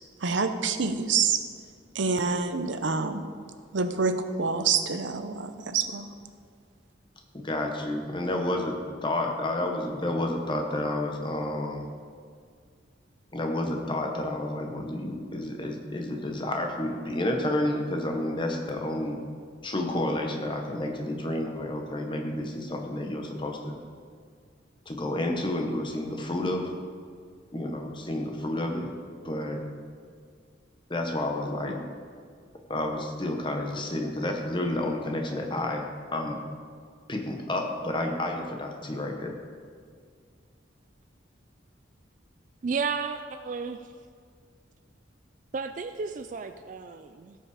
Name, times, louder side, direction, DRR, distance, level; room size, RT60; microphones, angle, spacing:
voice 1, 0.2-1.4 2.0-3.2 3.7-4.1 4.4-6.1, right 5 dB, 75° right, 8 dB, 0.7 m, -26 dB
voice 2, 7.3-11.9 13.3-19.2 19.6-23.8 24.9-26.7 27.5-28.9 29.2-29.6 30.9-31.8 32.7-36.4 37.1-39.3, left 1 dB, 25° left, 3 dB, 1.1 m, -30 dB
voice 3, 42.6-43.9 45.5-47.4, right 5 dB, 40° right, 9 dB, 0.3 m, -33 dB
16.5 x 5.6 x 4.9 m, 2.1 s
head